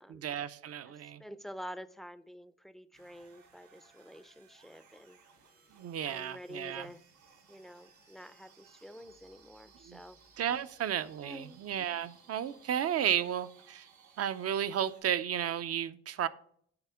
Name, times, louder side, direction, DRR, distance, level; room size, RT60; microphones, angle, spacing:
voice 1, 0.1-1.2 5.8-6.9 9.9-10.0 10.4-13.9 14.2-16.3, right 9 dB, 55° right, 0.6 m, -33 dB
voice 2, 1.2-5.2 6.0-7.0 7.5-10.2 11.2-11.6, equal, ahead, 0.5 m, -48 dB
sound 1, 2.9-15.0, right 5 dB, 75° right, 3.6 m, -61 dB
9.7 x 4.1 x 5.6 m
cardioid pair, 90°, 30 cm